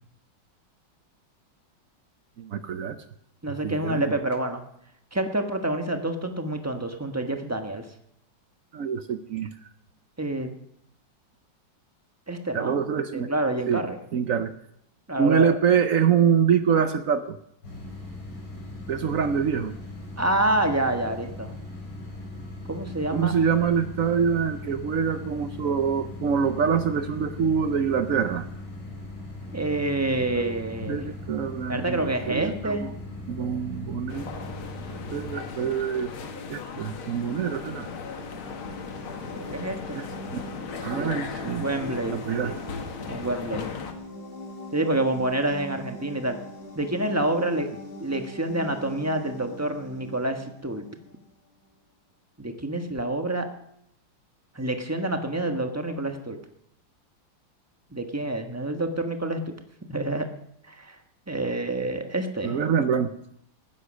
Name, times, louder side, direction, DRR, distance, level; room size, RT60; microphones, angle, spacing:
voice 1, 2.4-3.0 3.5-4.1 8.7-9.5 12.5-13.3 13.7-13.8 14.1-14.5 15.2-17.4 18.9-19.7 23.1-28.5 30.4-30.5 30.9-32.9 33.3-34.3 35.1-36.1 36.5-37.9 40.0-40.1 40.3-40.4 40.8-41.7 42.1-42.5 62.4-63.1, right 7 dB, 70° right, 10 dB, 0.8 m, -25 dB
voice 2, 3.4-4.6 5.1-7.8 10.2-10.5 12.3-12.8 13.1-14.0 15.1-15.5 20.2-21.5 22.7-23.3 29.5-31.0 31.7-32.9 39.2-40.0 40.9-41.2 41.6-42.5 43.1-43.7 44.7-46.4 46.7-47.7 48.0-50.8 52.4-53.5 54.5-56.4 57.9-59.4 59.9-60.3 60.7-61.0 61.3-62.6, right 1 dB, 10° right, 5 dB, 1.0 m, -27 dB
sound 1, 17.6-35.3, left 2 dB, 65° left, 6.1 m, -39 dB
sound 2, 34.1-43.9, left 5 dB, 85° left, 2.3 m, -37 dB
sound 3, 37.7-51.3, equal, 30° left, 2.1 m, -42 dB
19.0 x 9.9 x 6.4 m, 0.73 s
omnidirectional pair, 2.2 m